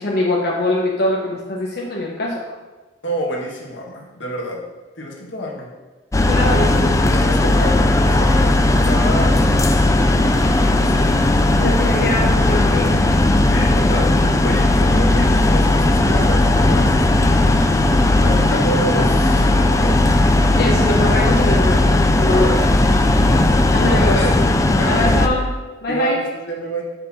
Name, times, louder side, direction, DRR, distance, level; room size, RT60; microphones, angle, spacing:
voice 1, 0.0-2.4 6.3-7.0 11.0-11.1 11.6-12.9 19.0-19.1 20.5-21.9 22.2-22.6 23.7-24.2 24.8-25.5 25.8-26.2, left 1 dB, 60° left, -3 dB, 1.0 m, -22 dB
voice 2, 3.0-4.6 5.0-5.7 7.0-9.9 10.6-11.2 13.5-17.5 18.2-20.0 22.3-22.6 23.9-24.4 24.8-25.3 25.9-26.8, equal, 85° left, -1 dB, 1.6 m, -28 dB
sound 1, 6.1-25.3, left 2 dB, 15° left, 0.4 m, -16 dB
5.8 x 5.5 x 6.0 m, 1.2 s
head